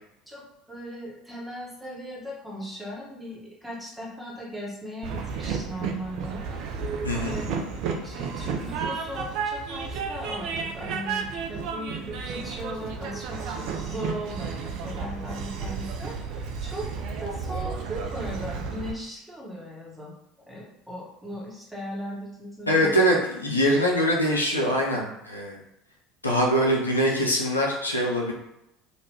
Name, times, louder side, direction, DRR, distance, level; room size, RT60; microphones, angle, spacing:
voice 1, 0.3-7.7 8.0-16.9 17.2-20.2 20.5-23.2 23.7-23.8, equal, 5° right, -5 dB, 1.2 m, -38 dB
Train, 5.0-18.9, right 5 dB, 55° right, 0.4 m, -32 dB
voice 2, 7.0-7.4 22.7-25.6 26.2-28.3, equal, 90° left, -2 dB, 0.5 m, -23 dB
2.8 x 2.5 x 3.3 m, 0.85 s
figure-of-eight pair, 70°, 0 cm